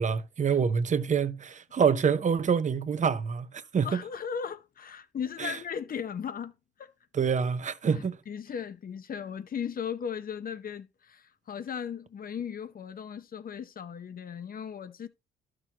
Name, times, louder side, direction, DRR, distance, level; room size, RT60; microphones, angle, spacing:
voice 1, 0.0-4.0 5.4-5.5 7.1-8.2, right 6 dB, 40° right, 0.9 m, -26 dB
voice 2, 3.8-6.9 7.9-15.1, left 7 dB, 45° left, 1.0 m, -37 dB
12.5 x 6.3 x 3.0 m
cardioid pair, 90°, 20 cm